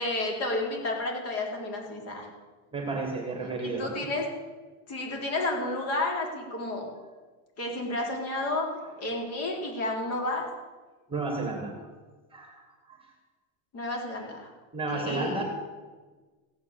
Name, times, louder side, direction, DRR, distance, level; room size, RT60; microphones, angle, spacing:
voice 1, 0.0-2.3 3.6-4.2 4.9-6.9 7.6-8.7 9.0-10.5 13.7-14.5 14.9-15.4, left 2 dB, 35° left, 1 dB, 4.2 m, -31 dB
voice 2, 2.7-4.1 8.8-8.9 11.1-11.8 12.3-12.6 12.9-13.1 14.7-15.4, right 3 dB, 15° right, 3 dB, 2.1 m, -32 dB
15.5 x 9.3 x 8.4 m, 1.3 s
supercardioid pair, 155°, 40 cm